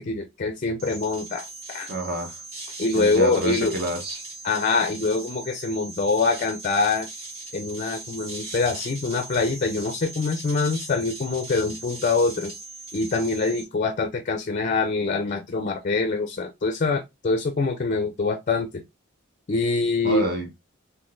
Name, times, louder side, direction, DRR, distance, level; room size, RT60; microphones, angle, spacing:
voice 1, 0.0-1.9 2.8-3.7 4.4-7.1 7.5-12.5 12.9-18.8 19.5-20.2, left 3 dB, 40° left, 0.4 m, -24 dB
sound 1, 0.8-13.7, right 2 dB, 80° right, 1.9 m, -39 dB
voice 2, 1.9-2.4 2.9-4.2 20.0-20.6, right 1 dB, 50° right, 1.0 m, -28 dB
3.6 x 2.7 x 2.5 m
head